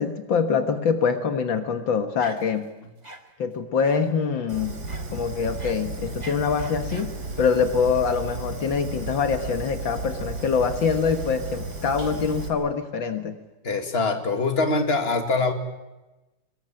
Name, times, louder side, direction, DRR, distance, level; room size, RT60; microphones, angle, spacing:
voice 1, 0.0-2.7 3.4-4.8 5.1-13.4, left 6 dB, 75° left, 7 dB, 2.2 m, -24 dB
sound 1, 2.2-2.7 3.0-3.2 3.8-4.1 4.9-5.1 5.4-7.2, right 2 dB, 20° right, 2.0 m, -43 dB
Fire, 4.5-12.5, right 3 dB, 55° right, 4.3 m, -34 dB
voice 2, 13.6-15.5, left 3 dB, 30° left, 5 dB, 2.5 m, -23 dB
23.5 x 22.0 x 9.0 m, 1.1 s
omnidirectional pair, 2.1 m